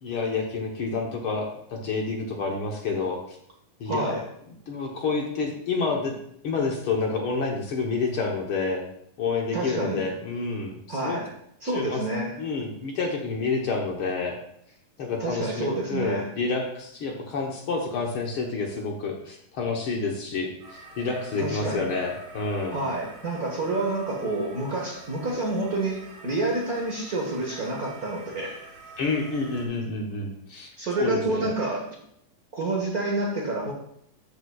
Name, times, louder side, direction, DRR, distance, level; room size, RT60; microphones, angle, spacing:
voice 1, 0.0-3.4 3.8-4.2 4.7-6.2 6.4-8.9 9.2-11.2 11.7-12.0 12.4-14.4 15.0-22.8 29.0-30.7 31.0-31.5, left 4 dB, 65° left, 0 dB, 1.4 m, -29 dB
voice 2, 3.9-4.2 9.5-10.0 10.9-11.3 11.6-12.4 15.2-16.3 21.4-21.9 22.7-28.7 30.8-31.9 32.5-33.7, right 2 dB, 50° right, -1 dB, 1.1 m, -28 dB
sound 1, 20.6-29.7, right 3 dB, 70° right, 3.8 m, -47 dB
12.5 x 6.9 x 2.4 m, 0.71 s
omnidirectional pair, 3.6 m